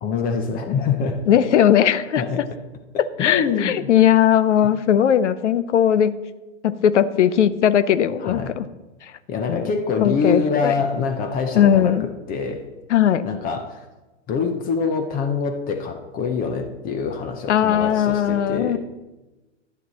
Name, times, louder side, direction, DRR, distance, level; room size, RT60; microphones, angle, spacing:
voice 1, 0.0-1.2 2.1-2.4 3.2-3.9 8.2-8.5 9.3-12.6 13.2-13.8 14.3-18.8, left 5 dB, 25° left, 6 dB, 0.8 m, -25 dB
voice 2, 1.3-2.5 3.0-6.1 6.6-8.7 9.0-9.1 9.5-9.7 10.0-10.7 11.5-12.1 12.9-13.3 17.5-18.8, left 9 dB, 70° left, 14 dB, 0.7 m, -18 dB
11.5 x 9.2 x 4.1 m, 1.1 s
hypercardioid pair, 125°, 37 cm